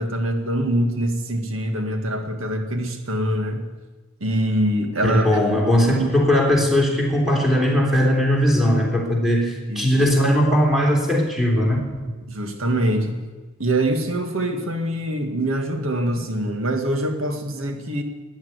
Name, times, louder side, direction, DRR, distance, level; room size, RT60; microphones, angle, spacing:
voice 1, 0.0-3.7 4.2-5.6 5.9-6.1 9.7-10.0 12.3-13.3 13.6-18.0, right 1 dB, 90° right, 5 dB, 1.9 m, -24 dB
voice 2, 5.0-11.8, equal, ahead, -1 dB, 3.4 m, -19 dB
14.5 x 10.5 x 9.6 m, 1.3 s
head